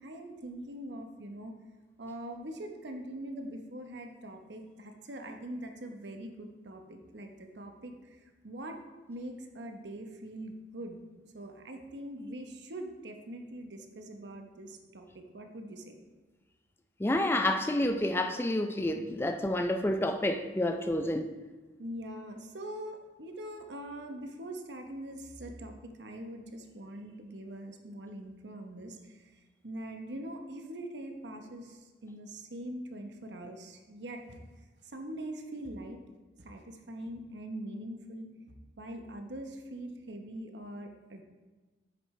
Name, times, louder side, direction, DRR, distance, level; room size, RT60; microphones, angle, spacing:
voice 1, 0.0-1.5 2.0-8.8 9.1-16.0 21.8-29.3 29.6-34.4 34.8-36.0 36.4-38.3 38.8-41.2, right 1 dB, 85° right, 0.9 m, -43 dB
voice 2, 17.0-21.3, left 1 dB, 15° left, 0.3 m, -29 dB
8.4 x 6.7 x 3.2 m
head